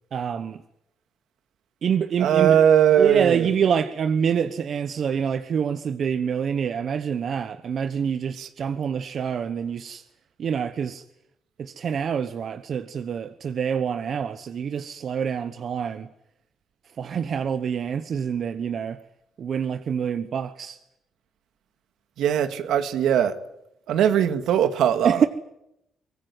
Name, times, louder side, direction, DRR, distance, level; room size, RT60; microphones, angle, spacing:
voice 1, 0.1-0.6 1.8-2.6 3.0-10.0 10.4-11.0 11.6-16.1 17.0-19.0 19.4-20.8 25.0-25.3, right 7 dB, 55° right, 1.1 m, -26 dB
voice 2, 2.2-3.5 8.4-8.5 22.2-23.3 23.9-25.3, right 9 dB, 80° right, 2.0 m, -20 dB
23.5 x 19.0 x 9.6 m
cardioid pair, 90°, 0 cm